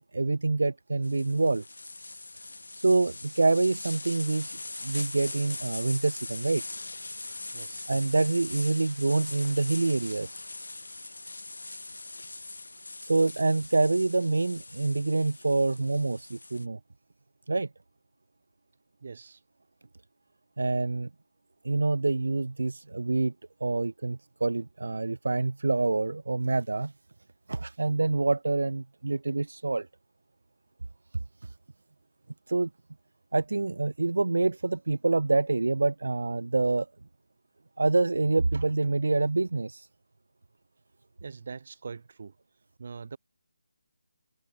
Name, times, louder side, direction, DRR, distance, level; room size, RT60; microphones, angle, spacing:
voice 1, 0.0-1.6 2.4-2.5 2.7-6.6 7.9-10.4 13.0-16.8 17.5-17.7 20.6-21.1 21.6-23.3 23.6-26.9 27.5-29.9 31.4-31.5 32.5-32.7 33.3-36.9 37.8-39.9, right 3 dB, 75° right, 0.7 m, -26 dB
sound 1, 1.0-16.6, left 2 dB, 85° left, 0.8 m, -41 dB
voice 2, 7.5-7.9 19.0-19.4 41.2-42.4 42.8-43.2, right 5 dB, 50° right, 4.0 m, -42 dB
figure-of-eight pair, 170°, 0 cm